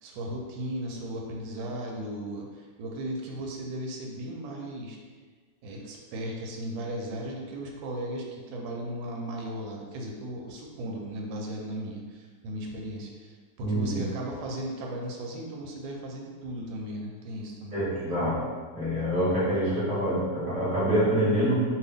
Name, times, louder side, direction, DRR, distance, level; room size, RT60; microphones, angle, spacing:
voice 1, 0.0-5.0 5.6-17.8, right 1 dB, 85° right, 0 dB, 1.3 m, -36 dB
voice 2, 13.6-14.0 17.7-18.4 18.7-21.6, right 1 dB, 5° right, -9 dB, 0.7 m, -26 dB
2.7 x 2.7 x 3.4 m, 1.5 s
omnidirectional pair, 2.0 m